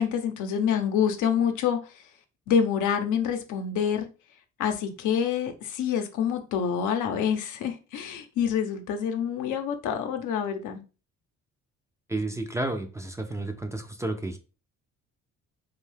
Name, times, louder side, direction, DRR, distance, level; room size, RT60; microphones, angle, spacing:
voice 1, 0.0-1.8 2.5-4.1 4.6-10.8, left 8 dB, 85° left, 0.6 m, -27 dB
voice 2, 12.1-14.4, right 2 dB, 10° right, 0.3 m, -31 dB
2.6 x 2.3 x 3.2 m
cardioid pair, 90°, 30 cm